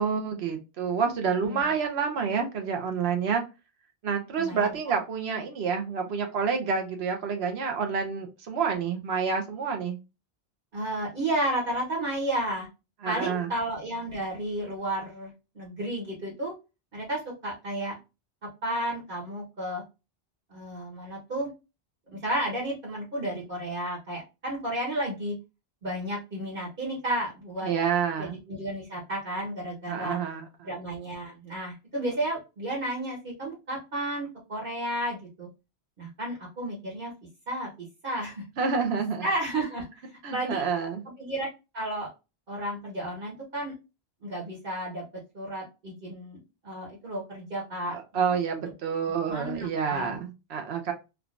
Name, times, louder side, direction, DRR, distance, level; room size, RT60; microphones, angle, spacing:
voice 1, 0.0-3.4 4.0-10.0 13.0-13.5 27.6-28.4 29.9-30.7 38.6-39.2 40.2-41.0 47.9-50.9, right 6 dB, 85° right, 4 dB, 1.0 m, -28 dB
voice 2, 4.4-4.7 10.7-12.7 13.0-16.5 16.9-18.0 18.6-19.8 20.5-21.5 22.1-25.3 25.8-27.7 28.2-30.2 30.6-35.5 36.0-37.1 37.5-37.7 38.0-38.4 39.2-39.9 40.3-40.6 41.2-41.5 41.7-42.1 42.5-43.7 44.2-45.0 45.3-48.0 48.2-48.4 49.3-50.2, right 1 dB, 60° right, -4 dB, 1.3 m, -32 dB
3.6 x 2.3 x 2.4 m, 0.27 s
omnidirectional pair, 1.0 m